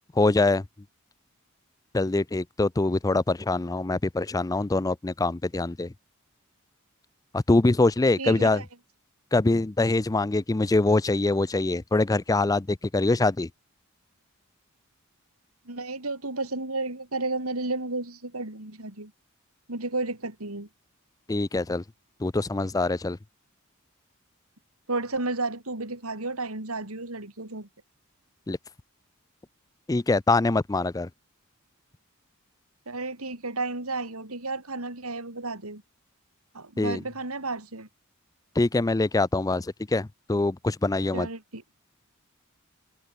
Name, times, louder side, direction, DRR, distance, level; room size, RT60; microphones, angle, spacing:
voice 1, 0.2-0.6 1.9-5.9 7.3-8.6 9.3-13.5 21.3-21.8 22.2-23.2 28.5-28.6 29.9-31.1 36.8-37.0 38.6-41.3, left 2 dB, 15° left, 0.4 m, -24 dB
voice 2, 8.2-8.7 15.6-19.1 19.7-20.7 24.9-27.7 32.9-35.8 36.5-37.9 41.1-41.6, right 3 dB, 90° right, 4.6 m, -32 dB
head